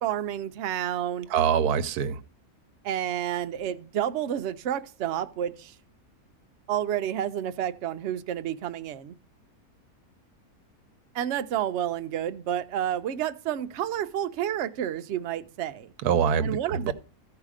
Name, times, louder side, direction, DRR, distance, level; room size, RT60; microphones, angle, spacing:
voice 1, 0.0-1.3 2.8-5.7 6.7-9.1 11.1-15.9 16.4-16.9, right 10 dB, 60° right, 0.8 m, -30 dB
voice 2, 1.3-2.2 16.0-16.9, right 7 dB, 80° right, 1.1 m, -24 dB
14.0 x 4.8 x 4.9 m
omnidirectional pair, 1.6 m